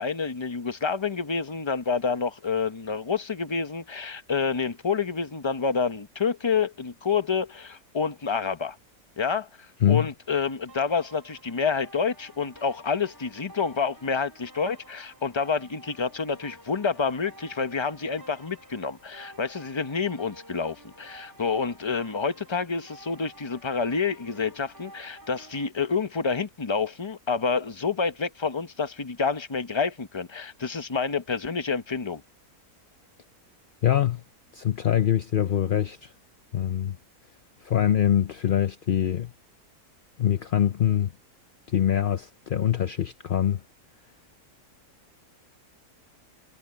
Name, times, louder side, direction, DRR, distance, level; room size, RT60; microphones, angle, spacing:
voice 1, 0.0-8.8 9.2-32.2, left 5 dB, 20° left, 0.8 m, -28 dB
sound 1, 10.7-25.7, equal, 15° right, 4.0 m, -51 dB
voice 2, 33.8-34.2 34.5-36.1 36.5-37.0 37.6-39.3 40.2-41.1 41.7-43.6, left 10 dB, 60° left, 0.5 m, -24 dB
omnidirectional pair, 1.6 m